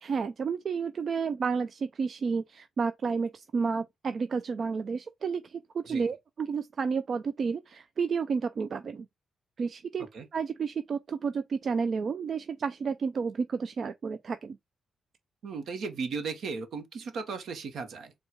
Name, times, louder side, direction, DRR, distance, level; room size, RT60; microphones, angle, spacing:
voice 1, 0.0-9.1 9.6-14.6, right 5 dB, 55° right, 0.4 m, -31 dB
voice 2, 15.4-18.1, right 4 dB, 75° right, 1.0 m, -36 dB
4.3 x 2.3 x 4.4 m
cardioid pair, 75°, 0 cm